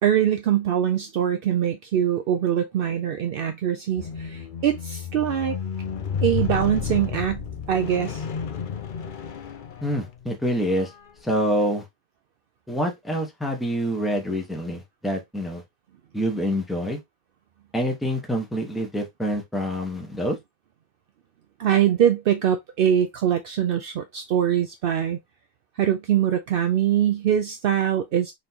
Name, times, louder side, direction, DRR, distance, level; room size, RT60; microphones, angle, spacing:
voice 1, 0.0-5.6 6.2-8.2 21.6-25.2 25.8-28.3, right 10 dB, 65° right, 0.7 m, -23 dB
Squeak, 4.0-10.3 11.1-11.2, left 7 dB, 55° left, 0.7 m, -31 dB
voice 2, 9.8-10.9 11.2-11.8 12.7-15.6 16.1-17.0 17.7-20.4, equal, ahead, 1.0 m, -26 dB
4.0 x 3.4 x 2.8 m
omnidirectional pair, 1.1 m